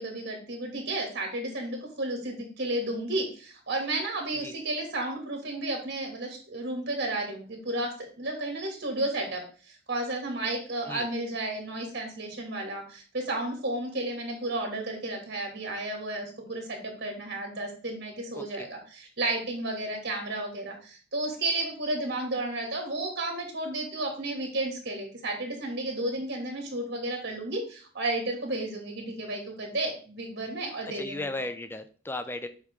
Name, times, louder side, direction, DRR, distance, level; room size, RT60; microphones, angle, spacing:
voice 1, 0.0-9.4 9.7-31.5, right 2 dB, 55° right, 2 dB, 2.5 m, -32 dB
voice 2, 18.3-18.7 30.9-32.5, left 2 dB, 10° left, 11 dB, 0.5 m, -36 dB
8.0 x 5.4 x 3.8 m, 0.39 s
head